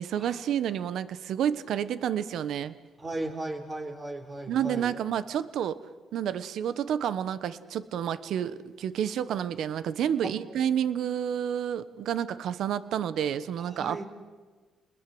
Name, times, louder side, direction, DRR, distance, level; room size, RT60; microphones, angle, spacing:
voice 1, 0.0-2.7 4.5-5.8 6.1-14.0, right 9 dB, 75° right, 15 dB, 1.2 m, -30 dB
voice 2, 3.0-4.9 10.2-10.3 13.6-14.0, right 2 dB, 25° right, 6 dB, 4.2 m, -36 dB
30.0 x 21.0 x 7.9 m, 1.4 s
cardioid pair, 90°, 0 cm